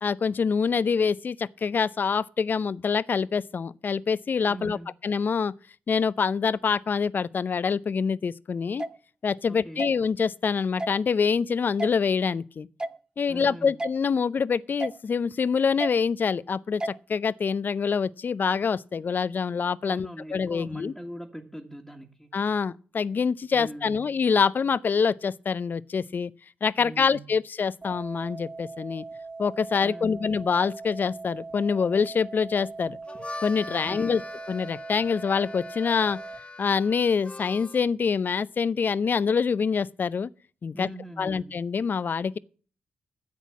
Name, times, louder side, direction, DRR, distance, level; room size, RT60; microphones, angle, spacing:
voice 1, 0.0-4.8 5.0-5.5 5.9-8.8 9.2-12.7 13.2-20.9 22.3-26.3 26.6-29.0 29.4-33.0 33.4-34.2 34.5-36.2 36.6-40.3 40.6-40.9 41.2-42.4, left 6 dB, 50° left, 0.6 m, -25 dB
voice 2, 4.5-4.9 9.5-9.9 13.3-13.8 19.8-22.3 23.5-24.1 26.8-27.4 29.8-30.2 33.7-34.2 40.7-41.6, right 1 dB, ahead, 1.9 m, -41 dB
sound 1, 8.8-8.9 9.8-9.9 10.8-11.0 11.8-11.9 12.8-13.0 13.8-13.9 14.8-15.0 15.8-15.9 16.8-17.0, right 1 dB, 20° right, 0.7 m, -31 dB
sound 2, 27.8-36.4, right 3 dB, 40° right, 3.0 m, -41 dB
Harmonica, 32.9-37.9, left 2 dB, 30° left, 1.2 m, -42 dB
10.5 x 8.1 x 7.2 m
hypercardioid pair, 40°, 4 cm